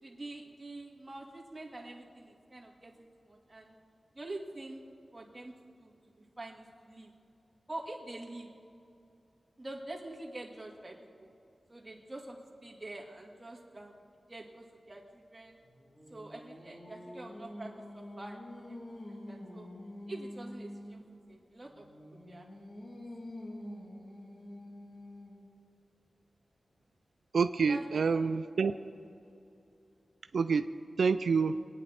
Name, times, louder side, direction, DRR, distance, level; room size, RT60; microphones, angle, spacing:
voice 1, 0.0-3.7 4.2-4.8 5.1-5.5 5.8-5.9 6.4-7.1 7.7-8.5 9.6-11.3 11.7-14.0 14.3-15.0 15.3-15.6 16.1-18.8 19.1-19.7 20.1-21.8 22.3-22.4 27.7-28.2, right 2 dB, 20° right, -1 dB, 2.0 m, -46 dB
Singing, 15.6-21.0 21.7-25.5, left 1 dB, 35° left, 3.1 m, -47 dB
voice 2, 27.3-28.8 30.3-30.7 31.0-31.6, right 5 dB, 90° right, 10 dB, 0.4 m, -27 dB
23.5 x 9.3 x 4.3 m, 2.7 s
wide cardioid pair, 125°, 0 cm